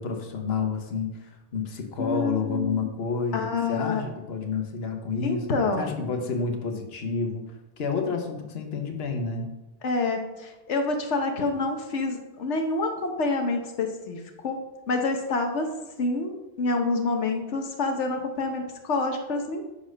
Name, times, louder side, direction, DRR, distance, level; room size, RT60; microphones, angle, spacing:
voice 1, 0.0-5.5 5.8-7.4 7.8-9.5, left 5 dB, 65° left, 4 dB, 1.3 m, -29 dB
voice 2, 2.0-2.9 3.3-4.0 5.2-5.9 9.8-14.6 14.9-15.7 16.0-19.6, left 3 dB, 90° left, 4 dB, 1.3 m, -27 dB
10.0 x 4.2 x 6.3 m, 1.0 s
omnidirectional pair, 1.2 m